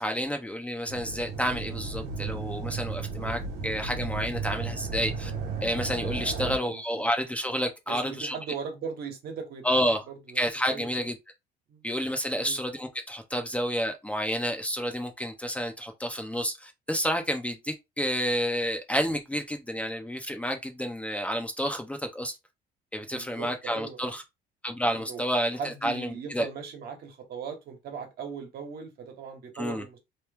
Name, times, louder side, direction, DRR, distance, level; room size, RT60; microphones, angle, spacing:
voice 1, 0.0-5.3 5.6-8.3 9.6-10.0 10.4-11.1 11.8-22.4 22.9-24.2 24.6-26.5 29.6-29.8, equal, 10° left, 0.6 m, -30 dB
sound 1, 0.9-6.6, right 4 dB, 80° right, 1.1 m, -34 dB
voice 2, 6.3-7.1 7.9-11.0 11.7-11.8 12.3-12.6 23.1-24.1 24.9-25.2 25.6-30.0, right 6 dB, 65° right, 1.3 m, -39 dB
3.0 x 2.3 x 3.4 m
cardioid pair, 110°, 17 cm